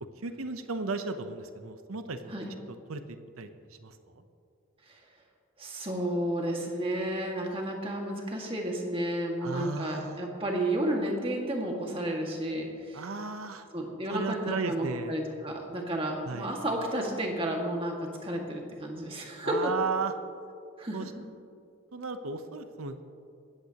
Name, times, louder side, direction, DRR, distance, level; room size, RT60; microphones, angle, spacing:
voice 1, 0.2-2.3 2.9-3.5 3.8-4.2 9.4-10.3 12.9-13.7 14.1-15.2 16.2-16.5 19.4-20.1 20.9-21.1 21.9-23.1, right 4 dB, 80° right, 8 dB, 0.8 m, -35 dB
voice 2, 5.6-13.0 13.7-19.7 20.8-21.1, right 1 dB, 25° right, 0 dB, 1.9 m, -32 dB
18.5 x 14.5 x 2.9 m, 2.5 s
head